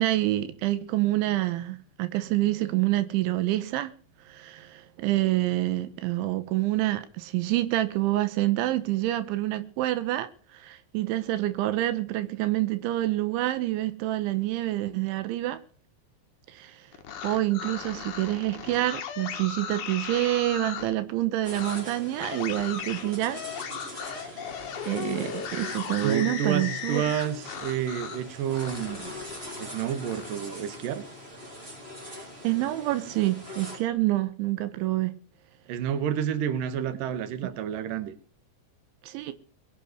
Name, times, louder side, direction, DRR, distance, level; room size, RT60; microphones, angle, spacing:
voice 1, 0.0-3.9 4.3-15.6 16.5-16.8 17.2-23.5 23.9-24.3 24.9-27.1 32.4-35.1 39.0-39.3, right 16 dB, 85° right, 3.4 m, -27 dB
sound 1, 16.9-20.9 21.5-21.8 22.2-28.2 28.6-30.3, left 8 dB, 60° left, 2.3 m, -37 dB
sound 2, 21.4-33.8, left 1 dB, 15° right, 3.6 m, -42 dB
voice 2, 26.0-29.1 29.6-31.0 35.7-38.1, right 9 dB, 65° right, 2.5 m, -30 dB
22.0 x 8.2 x 6.7 m
omnidirectional pair, 5.5 m